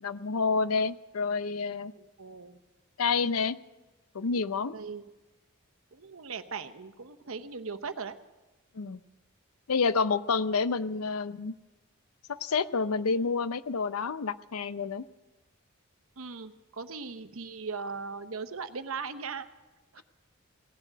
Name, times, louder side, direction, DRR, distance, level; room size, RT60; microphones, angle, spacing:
voice 1, 0.0-1.9 3.0-3.6 4.1-4.8 8.8-9.0 9.7-11.5 12.3-15.0, left 4 dB, 90° left, 14 dB, 0.6 m, -29 dB
voice 2, 2.0-2.6 4.7-5.0 5.9-8.1 16.2-19.4 19.9-20.0, right 5 dB, 75° right, 10 dB, 0.9 m, -39 dB
17.5 x 7.5 x 9.0 m, 1.1 s
head